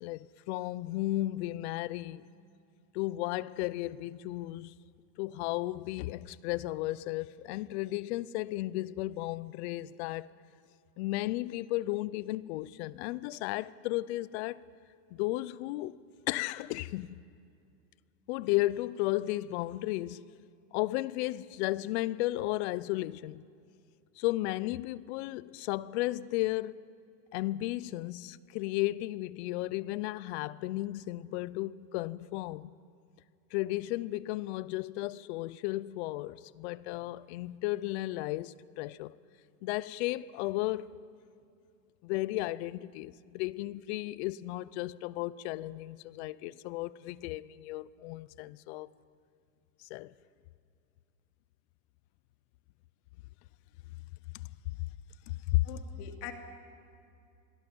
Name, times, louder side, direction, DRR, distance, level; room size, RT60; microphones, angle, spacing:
voice 1, 0.0-2.2 2.9-4.8 5.2-10.3 11.0-14.6 15.1-16.0 16.3-17.2 18.3-20.3 20.7-23.4 24.2-26.8 27.3-32.7 33.5-39.1 39.6-40.9 42.0-48.9 49.8-50.1 54.3-54.5 55.3-55.7, left 17 dB, 45° left, 0.5 m, -34 dB
voice 2, 55.6-56.3, left 12 dB, 70° left, 2.9 m, -43 dB
27.5 x 22.5 x 5.3 m
supercardioid pair, 145°, 48 cm